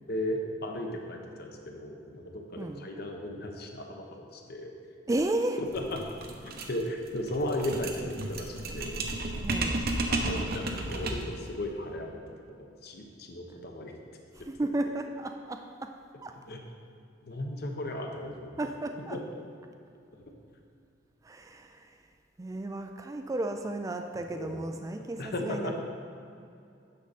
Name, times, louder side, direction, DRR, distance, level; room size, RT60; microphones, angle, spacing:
voice 1, 0.1-4.7 5.7-9.0 9.3-9.4 10.1-12.2 12.5-13.9 16.5-16.6 17.2-18.6 19.1-19.2 20.2-20.3 24.2-24.6 25.0-25.8, left 1 dB, 60° left, 2 dB, 1.0 m, -36 dB
voice 2, 2.6-2.9 5.1-5.6 9.4-9.9 14.4-16.0 16.2-16.4 18.6-19.2 21.2-22.0 22.4-25.8, right 2 dB, 20° right, 5 dB, 0.3 m, -33 dB
sound 1, 5.7-11.4, right 2 dB, 55° right, 0.8 m, -33 dB
9.4 x 6.5 x 4.2 m, 2.5 s
head